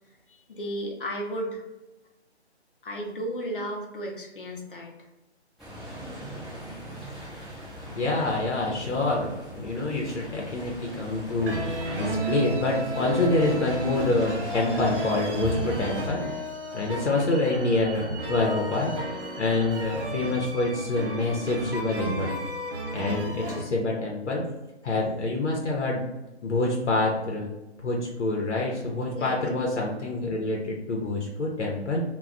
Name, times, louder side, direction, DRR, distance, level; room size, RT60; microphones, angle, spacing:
voice 1, 0.3-1.6 2.8-4.9 29.1-29.4, equal, 50° left, 1 dB, 0.7 m, -34 dB
sound 1, 5.6-16.1, equal, ahead, 0.3 m, -39 dB
voice 2, 7.9-16.2 16.7-18.9 19.4-22.4 22.9-24.4 24.8-26.0 26.4-27.5 27.8-32.0, left 2 dB, 80° left, -1 dB, 0.8 m, -26 dB
sound 2, 11.4-23.6, right 1 dB, 55° right, 0.7 m, -33 dB
2.3 x 2.2 x 3.7 m, 1.0 s
hypercardioid pair, 170°, 34 cm